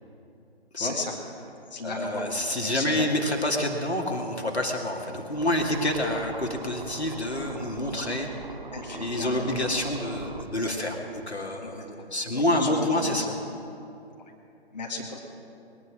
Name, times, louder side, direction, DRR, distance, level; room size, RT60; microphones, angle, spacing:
voice 1, 0.8-1.1 1.7-2.3 2.6-3.1 8.7-9.3 11.6-11.8 12.3-13.4 14.2-14.3 14.7-15.2, left 3 dB, 40° left, 0 dB, 1.9 m, -35 dB
voice 2, 1.8-8.3 8.9-13.3, left 1 dB, 85° left, 1 dB, 2.3 m, -28 dB
sound 1, 5.3-10.4, right 3 dB, 50° right, 1.1 m, -41 dB
21.0 x 10.5 x 6.2 m, 2.7 s
figure-of-eight pair, 150°, 32 cm